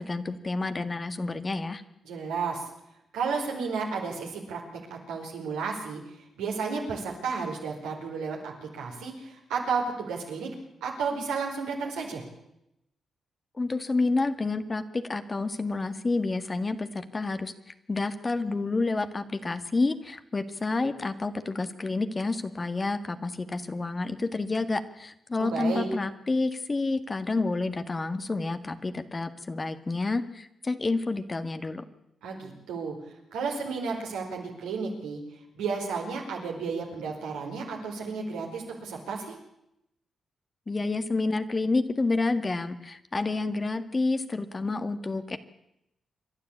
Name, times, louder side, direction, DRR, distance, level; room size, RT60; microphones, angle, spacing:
voice 1, 0.0-1.8 13.6-17.5 17.9-31.9 40.7-45.4, left 3 dB, 35° left, 10 dB, 1.8 m, -29 dB
voice 2, 2.0-2.6 3.1-4.6 4.9-10.5 10.8-12.2 25.4-25.8 32.2-32.9 33.3-35.2 35.5-39.3, right 5 dB, 90° right, 0 dB, 4.7 m, -32 dB
27.5 x 11.5 x 8.6 m, 0.83 s
supercardioid pair, 45°, 0 cm